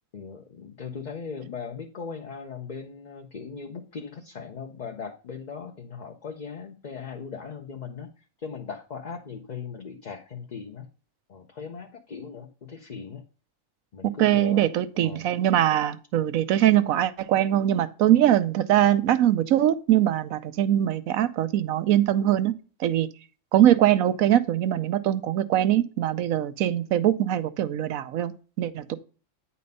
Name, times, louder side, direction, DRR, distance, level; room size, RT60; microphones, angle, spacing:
voice 1, 0.1-10.9 11.3-13.2 13.9-14.6 14.9-15.3, left 6 dB, 40° left, 0.8 m, -39 dB
voice 2, 14.2-22.5 22.8-23.1 23.5-29.0, right 12 dB, 85° right, 1.1 m, -22 dB
9.5 x 4.3 x 5.4 m
omnidirectional pair, 1.4 m